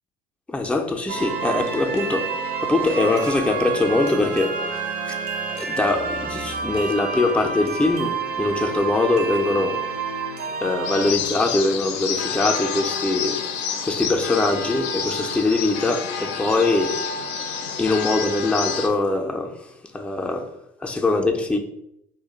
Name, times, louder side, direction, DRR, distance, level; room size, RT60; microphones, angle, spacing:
voice 1, 0.5-2.3 2.6-5.2 5.5-9.9 10.6-13.4 13.8-17.0 17.8-20.5 20.8-21.6, left 2 dB, 5° left, 0.4 m, -22 dB
sound 1, 1.1-11.1, right 5 dB, 55° right, 0.6 m, -28 dB
sound 2, 10.8-18.9, left 6 dB, 65° left, 0.4 m, -28 dB
2.2 x 2.1 x 3.8 m
hypercardioid pair, 65°, 20 cm